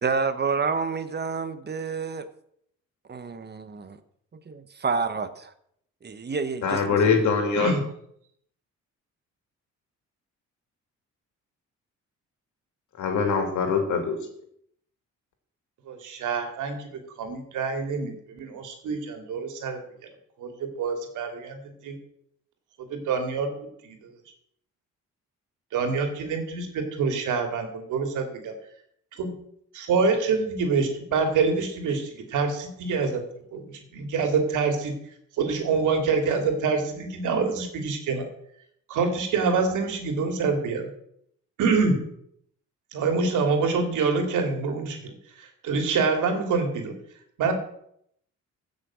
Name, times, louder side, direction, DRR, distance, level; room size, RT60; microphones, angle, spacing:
voice 1, 0.0-2.3 3.1-4.0 4.5-5.5 6.0-7.0, right 5 dB, 35° right, 11 dB, 1.2 m, -29 dB
voice 2, 6.6-7.7 13.0-14.2, left 5 dB, 75° left, 4 dB, 3.3 m, -23 dB
voice 3, 15.9-16.9 17.2-19.8 20.4-21.9 22.9-23.5 23.8-24.0 25.7-28.5 29.2-29.3 29.7-33.2 33.5-33.6 33.9-34.9 35.4-38.3 38.9-40.9 41.6-42.0 42.9-46.9 47.4-47.5, right 4 dB, 80° right, 5 dB, 2.8 m, -26 dB
16.0 x 6.6 x 6.3 m, 0.70 s
cardioid pair, 90°, 30 cm